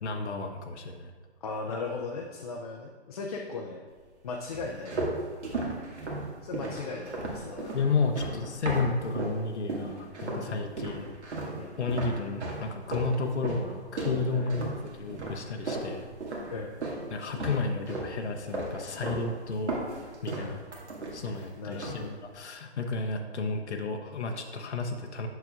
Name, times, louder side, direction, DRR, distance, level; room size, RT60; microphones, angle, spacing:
voice 1, 0.0-1.1 7.7-11.1 11.8-16.1 17.1-19.8 20.2-20.6 21.1-25.3, left 4 dB, 80° left, 3 dB, 0.8 m, -32 dB
voice 2, 1.4-3.8 4.2-5.0 6.4-8.2 8.7-8.9 10.5-10.7 11.5-11.8 14.3-14.5 16.5-16.8 18.7-19.0 20.4-20.6 21.6-22.2, left 4 dB, 35° left, 1 dB, 0.4 m, -38 dB
sound 1, 4.5-9.4 9.7-10.5 10.8-17.0 17.3-18.1 18.5-19.3 19.5-21.4 21.7-22.1, right 2 dB, 85° right, 1.9 m, -35 dB
7.7 x 6.7 x 2.4 m, 1.5 s
hypercardioid pair, 150°, 34 cm